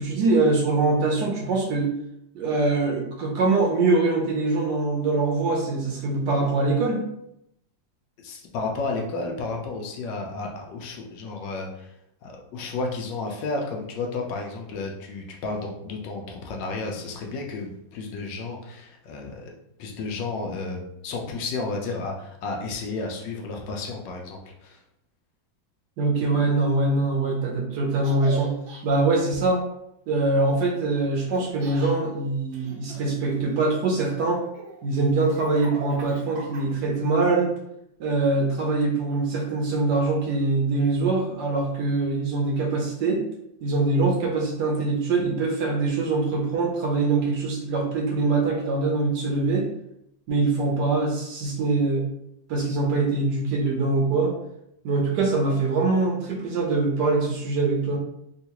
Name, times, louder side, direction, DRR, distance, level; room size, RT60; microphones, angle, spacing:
voice 1, 0.0-1.9 2.3-7.1 26.0-28.6 28.8-29.6 30.1-34.4 34.8-37.5 38.0-43.2 43.6-49.7 50.3-52.1 52.5-54.3 54.8-58.0, right 3 dB, 70° right, 0 dB, 1.1 m, -23 dB
voice 2, 8.2-11.9 12.2-19.5 19.8-24.8, left 3 dB, 75° left, 1 dB, 1.2 m, -32 dB
Laughter, 28.0-28.8 31.3-31.9 32.5-33.8 34.3-36.9, right 3 dB, 90° right, 1.5 m, -40 dB
3.6 x 2.4 x 2.8 m, 0.79 s
omnidirectional pair, 2.1 m